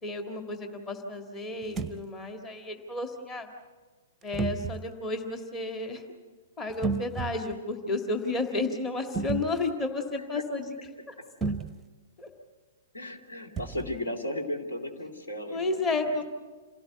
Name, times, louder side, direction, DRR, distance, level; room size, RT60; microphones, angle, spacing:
voice 1, 0.0-3.5 4.2-6.0 6.6-10.8 11.1-11.2 11.4-11.5 12.2-12.3 15.5-16.2, left 3 dB, 20° left, 4 dB, 1.8 m, -32 dB
sound 1, 1.6-2.0 4.3-4.9 6.7-7.6 9.1-9.7 11.4-11.9 13.6-14.0, right 4 dB, 10° right, 0.7 m, -32 dB
voice 2, 12.9-16.2, left 1 dB, 70° left, 4 dB, 2.6 m, -35 dB
27.5 x 17.5 x 8.0 m, 1.4 s
figure-of-eight pair, 110°, 0 cm